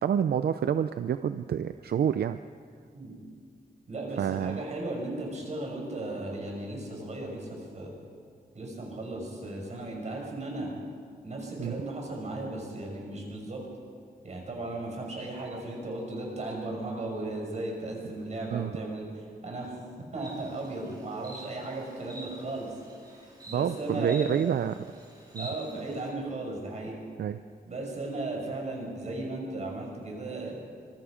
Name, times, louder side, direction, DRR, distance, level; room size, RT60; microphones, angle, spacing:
voice 1, 0.0-2.4 4.2-4.6 11.6-11.8 18.5-18.7 23.5-24.9 25.3-25.5 27.2-27.4, right 8 dB, 75° right, 11 dB, 0.6 m, -28 dB
voice 2, 3.9-7.9 8.5-10.7 11.2-13.6 14.2-19.0 19.4-19.8 20.1-22.7 23.5-24.3 25.4-27.0 27.7-30.5, right 2 dB, 45° right, 0 dB, 6.1 m, -36 dB
Insect, 20.2-26.1, equal, 25° right, 4.5 m, -48 dB
25.0 x 23.0 x 5.1 m, 2.1 s
wide cardioid pair, 170°, 17 cm